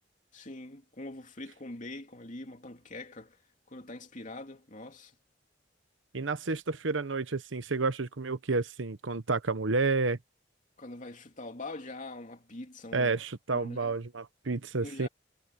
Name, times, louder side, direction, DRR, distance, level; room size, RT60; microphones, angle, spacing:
voice 1, 0.3-3.4 3.7-5.1 10.8-13.2 13.5-14.0 14.8-15.1, left 2 dB, 40° left, 3.0 m, -43 dB
voice 2, 6.1-10.2 12.9-15.1, right 3 dB, 80° right, 1.0 m, -30 dB
head